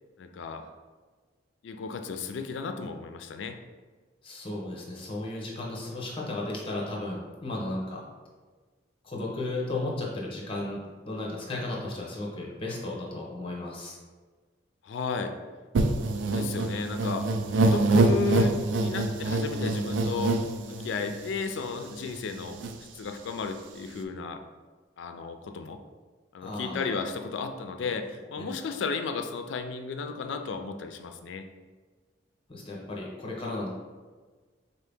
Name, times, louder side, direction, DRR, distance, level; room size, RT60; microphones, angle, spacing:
voice 1, 0.2-0.6 1.6-3.6 14.8-15.3 16.1-17.2 17.6-20.4 20.6-22.6 22.9-24.4 25.0-25.8 26.3-31.4, left 5 dB, 70° left, 7 dB, 0.3 m, -34 dB
voice 2, 4.2-8.0 9.0-10.8 11.1-14.0 26.4-26.9 28.4-28.5 32.5-33.7, left 2 dB, 30° left, -3 dB, 0.8 m, -34 dB
sound 1, 15.7-21.3 21.8-21.9 22.1-22.7, right 2 dB, 80° right, 0.4 m, -26 dB
4.0 x 2.8 x 3.4 m, 1.4 s
head